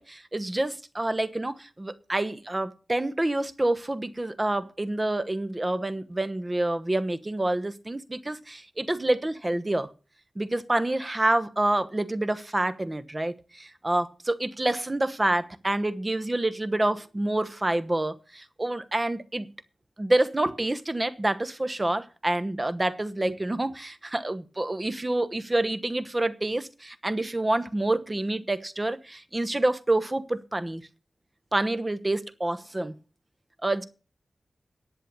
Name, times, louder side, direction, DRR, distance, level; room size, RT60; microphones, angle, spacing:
voice 1, 0.0-9.9 10.4-19.5 20.0-30.8 31.5-33.0 33.6-33.8, right 1 dB, 25° right, 1.1 m, -27 dB
10.5 x 7.7 x 6.8 m
cardioid pair, 60°, 0 cm